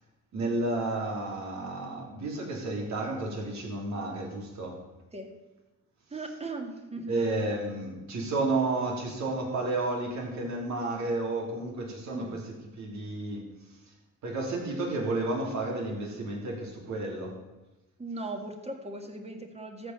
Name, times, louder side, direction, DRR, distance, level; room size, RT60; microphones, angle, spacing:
voice 1, 0.3-4.8 7.1-12.4 12.8-13.4 14.2-17.3, right 2 dB, 65° right, -1 dB, 3.6 m, -31 dB
voice 2, 6.1-7.3 12.1-12.4 18.0-19.9, right 2 dB, 20° right, 4 dB, 2.0 m, -38 dB
14.0 x 5.3 x 7.0 m, 1.1 s
cardioid pair, 90°, 30 cm